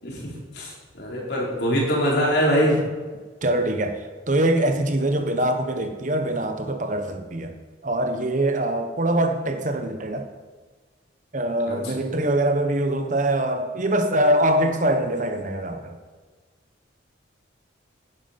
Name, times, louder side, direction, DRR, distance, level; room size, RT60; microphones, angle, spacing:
voice 1, 0.0-2.8 11.7-11.8, equal, 55° left, -3 dB, 4.0 m, -23 dB
voice 2, 3.4-4.0 4.3-7.5 7.8-10.3 11.3-15.9, right 1 dB, 40° right, 6 dB, 1.1 m, -23 dB
11.0 x 10.5 x 5.8 m, 1.4 s
head